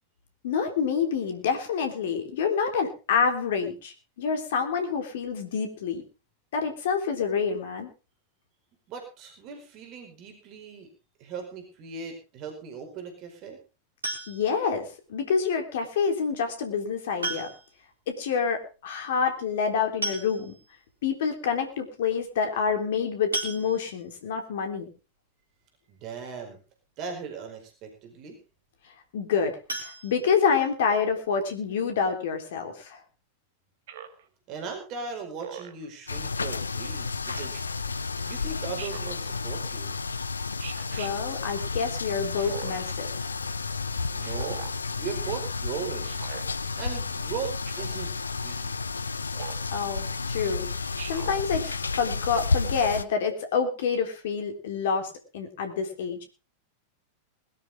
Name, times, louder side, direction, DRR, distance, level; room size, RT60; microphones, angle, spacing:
voice 1, 0.4-6.0 6.5-7.9 14.3-17.5 18.1-20.5 21.0-24.9 29.1-33.0 41.0-43.3 49.7-56.2, left 6 dB, 55° left, 6 dB, 3.6 m, -27 dB
voice 2, 8.9-10.9 11.2-13.6 25.9-26.6 27.0-28.4 34.5-37.7 38.2-40.0 44.1-44.6 45.0-46.2 46.8-48.1 48.4-48.7, right 6 dB, 40° right, 4 dB, 4.8 m, -38 dB
sound 1, 14.0-14.7 16.1-16.2 17.2-17.8 18.1-18.2 18.5-18.6 19.6-19.7 20.0-20.7 21.3-21.4 21.7-21.9 23.3-24.2 29.6-30.8 31.2-31.3 31.7-31.8 32.2-32.3, right 2 dB, 80° right, 3.4 m, -35 dB
Speech synthesizer, 33.9-34.2 35.4-35.9 37.3-37.6 38.8-39.2 40.6-41.1 42.4-42.9 44.2-44.8 46.0-46.4 47.7-48.0 49.3-49.7 51.0-51.4, right 9 dB, 55° right, 1.9 m, -41 dB
sound 2, 36.1-53.0, left 4 dB, 75° left, 0.7 m, -31 dB
21.0 x 12.5 x 3.6 m, 0.33 s
figure-of-eight pair, 90°, 0 cm